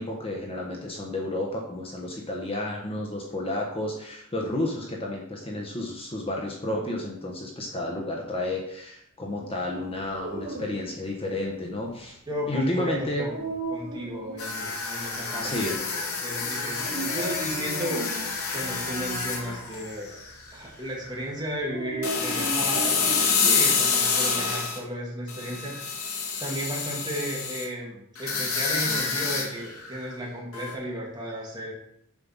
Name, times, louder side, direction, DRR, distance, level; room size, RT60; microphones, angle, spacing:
voice 1, 0.0-12.2 12.5-13.3 15.4-15.8, left 1 dB, 25° left, -1 dB, 1.2 m, -31 dB
Dog, 9.9-23.6, right 2 dB, 45° right, 1.4 m, -38 dB
voice 2, 12.3-13.5 13.7-18.0 18.5-20.2 20.5-23.0 23.4-31.7, equal, 20° right, -4 dB, 2.4 m, -34 dB
sound 1, 14.4-20.5 20.9-21.1 22.0-24.8 25.3-27.6 28.2-30.1 30.5-30.7, left 5 dB, 70° left, 1.8 m, -28 dB
7.3 x 5.5 x 5.6 m, 0.73 s
head